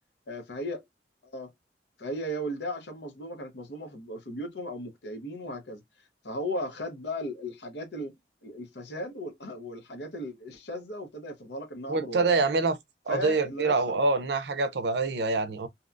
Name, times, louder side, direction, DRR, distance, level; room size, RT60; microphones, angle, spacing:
voice 1, 0.3-0.8 1.2-1.5 2.0-5.8 6.2-8.1 8.4-12.3 13.1-13.7, equal, 70° left, 0.8 m, -36 dB
voice 2, 11.9-12.8 13.1-15.7, right 3 dB, 70° right, 0.5 m, -26 dB
2.8 x 2.2 x 2.4 m
head